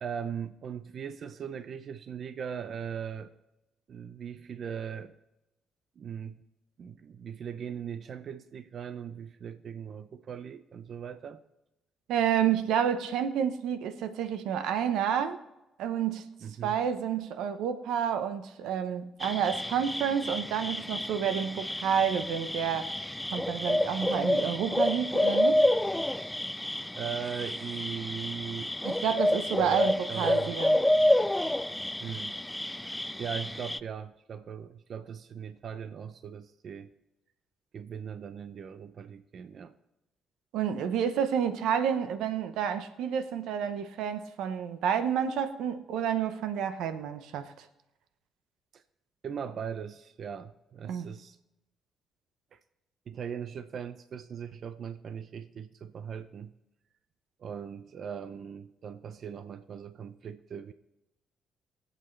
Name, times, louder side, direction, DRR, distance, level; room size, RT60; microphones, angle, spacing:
voice 1, 0.0-3.3 3.9-5.1 6.0-6.4 6.8-11.4 16.4-16.8 26.9-28.7 29.5-30.5 32.0-32.4 32.8-36.9 37.7-39.7 48.7-48.8 49.2-51.4 52.5-52.6 53.1-56.5 57.4-60.7, right 7 dB, 55° right, 0.6 m, -39 dB
voice 2, 12.1-15.4 15.8-16.3 16.6-22.9 23.3-25.6 28.8-30.8 40.5-47.6 50.8-51.1, right 8 dB, 90° right, 0.9 m, -29 dB
sound 1, 19.2-33.8, left 1 dB, 5° left, 0.3 m, -29 dB
23.5 x 8.1 x 3.3 m
cardioid pair, 90°, 0 cm